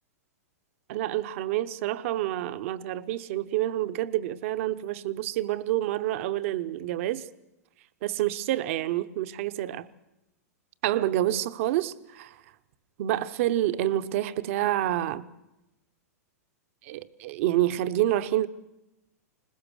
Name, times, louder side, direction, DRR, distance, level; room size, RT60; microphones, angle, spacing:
voice 1, 0.9-7.3 8.0-9.9 10.8-12.3 13.0-15.3 16.8-18.5, right 14 dB, 55° right, 0.9 m, -28 dB
21.5 x 20.5 x 6.4 m
figure-of-eight pair, 105°, 9 cm